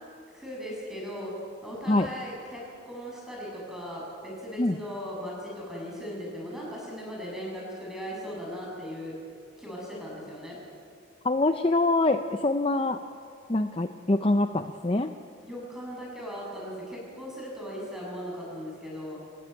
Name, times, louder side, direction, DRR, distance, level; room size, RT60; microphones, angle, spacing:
voice 1, 0.3-1.3 1.6-9.2 9.6-10.6 15.4-19.3, equal, ahead, -4 dB, 7.4 m, -38 dB
voice 2, 11.2-13.0 13.5-15.1, left 2 dB, 25° left, 8 dB, 0.6 m, -24 dB
28.0 x 15.5 x 9.0 m, 2.4 s
head